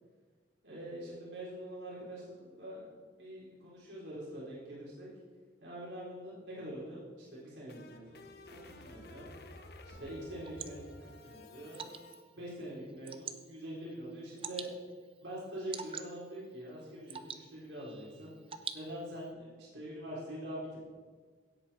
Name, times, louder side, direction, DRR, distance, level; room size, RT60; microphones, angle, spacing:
voice 1, 0.6-5.1 5.6-9.3 10.0-11.9 12.3-14.8 15.2-18.3 18.7-20.8, right 1 dB, 90° right, -6 dB, 4.2 m, -44 dB
sound 1, 7.3-12.2, left 2 dB, 60° left, 1.0 m, -52 dB
Water / Drip, 9.9-19.3, right 7 dB, 30° right, 0.6 m, -48 dB
16.5 x 8.2 x 4.4 m, 1.5 s
head